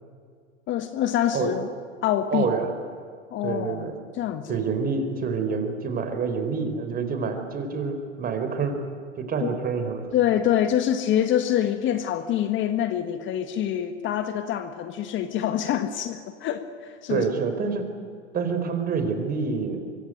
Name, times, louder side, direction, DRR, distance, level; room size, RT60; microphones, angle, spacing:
voice 1, 0.7-1.7 2.0-2.5 3.3-4.6 9.4-9.5 10.1-17.2, left 10 dB, 30° left, 9 dB, 1.6 m, -25 dB
voice 2, 2.3-2.8 3.4-3.9 4.5-8.8 9.2-10.1 17.1-17.9 18.3-19.8, right 5 dB, 25° right, 7 dB, 4.4 m, -27 dB
25.0 x 24.5 x 9.3 m, 2.1 s
hypercardioid pair, 120°, 37 cm